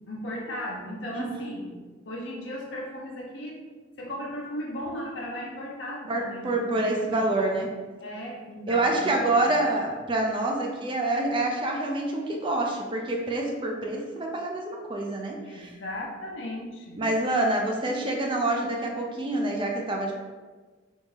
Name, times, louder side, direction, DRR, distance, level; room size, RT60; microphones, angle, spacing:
voice 1, 0.1-1.7 2.0-3.6 4.0-7.6 8.0-9.5 15.5-17.0, left 1 dB, 75° left, -3 dB, 0.7 m, -37 dB
voice 2, 1.1-1.4 6.1-7.7 8.7-15.7 17.0-20.1, right 2 dB, 25° right, 0 dB, 0.4 m, -27 dB
3.5 x 2.7 x 3.2 m, 1.3 s
head